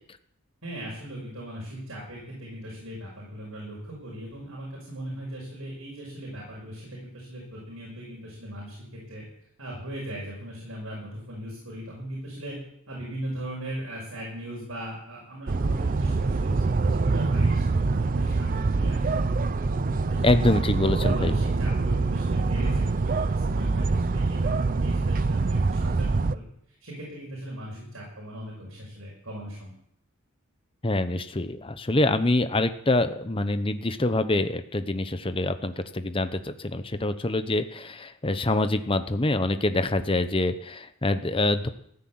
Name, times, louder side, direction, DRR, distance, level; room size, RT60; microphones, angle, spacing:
voice 1, 0.6-9.2 9.6-12.6 12.9-19.3 19.5-20.6 21.0-29.7, right 1 dB, 75° right, -3 dB, 5.8 m, -38 dB
sound 1, 15.5-26.4, right 3 dB, 40° right, 0.5 m, -25 dB
voice 2, 20.2-21.4 30.8-41.7, left 2 dB, 25° left, 10 dB, 0.8 m, -25 dB
14.5 x 9.7 x 7.9 m, 0.72 s
head